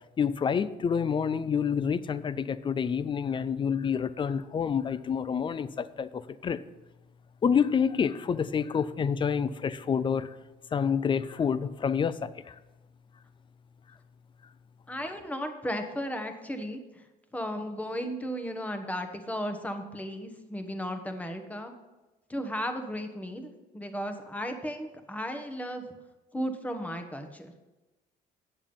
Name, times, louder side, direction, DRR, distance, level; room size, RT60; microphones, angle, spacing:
voice 1, 0.2-6.6 7.4-10.3 10.7-12.5, left 7 dB, 30° left, 15 dB, 0.5 m, -28 dB
voice 2, 14.9-17.1 17.3-21.7 22.3-25.8 26.3-27.5, equal, 10° left, 6 dB, 1.2 m, -35 dB
8.8 x 7.1 x 5.4 m, 1.1 s
cardioid pair, 110°, 17 cm